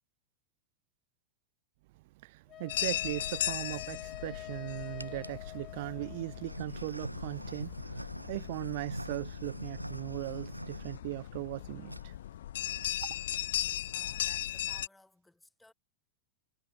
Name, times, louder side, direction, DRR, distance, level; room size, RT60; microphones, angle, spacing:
voice 1, 2.2-12.1 13.0-13.2, right 20 dB, 50° right, 0.8 m, -39 dB
Wind instrument woodwind instrument, 2.5-6.6, left 13 dB, 30° left, 1.8 m, -47 dB
sound 1, 2.7-14.9, left 12 dB, 60° left, 1.0 m, -38 dB
sound 2, 2.9-3.3 4.0-4.5 5.0-5.4 6.2-11.6 11.9-12.1 12.4-12.5 12.7-12.9 13.2-13.7, right 1 dB, 85° right, 0.5 m, -44 dB
voice 2, 13.9-15.7, left 2 dB, 5° left, 5.8 m, -60 dB
figure-of-eight pair, 90°, 0 cm